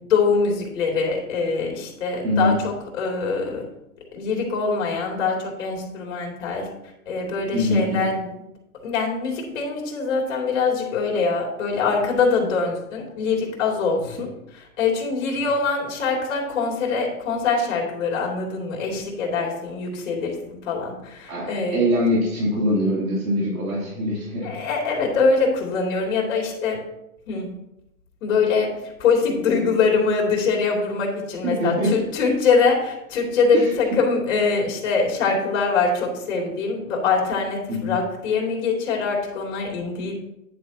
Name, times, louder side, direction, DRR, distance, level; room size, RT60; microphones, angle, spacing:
voice 1, 0.0-3.7 4.1-6.7 7.1-8.3 8.8-21.8 24.4-26.8 27.3-27.5 28.2-40.1, left 4 dB, 55° left, 0 dB, 3.0 m, -23 dB
voice 2, 2.2-2.5 7.5-8.1 21.3-24.6 31.4-32.0 33.5-33.7 37.7-38.0, equal, 65° right, -5 dB, 3.2 m, -23 dB
9.8 x 8.8 x 2.9 m, 0.83 s
hypercardioid pair, 115°, 44 cm